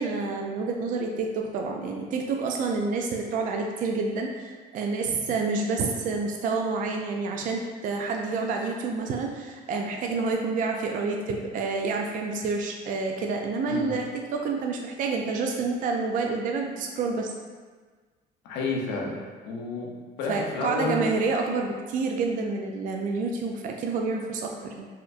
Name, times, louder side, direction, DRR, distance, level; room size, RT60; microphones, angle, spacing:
voice 1, 0.0-17.3 20.3-24.9, right 4 dB, 55° right, 2 dB, 0.4 m, -28 dB
voice 2, 18.4-19.2 19.4-19.9 20.2-21.1, left 3 dB, 80° left, -2 dB, 0.7 m, -30 dB
4.1 x 2.6 x 2.4 m, 1.5 s
cardioid pair, 110°, 17 cm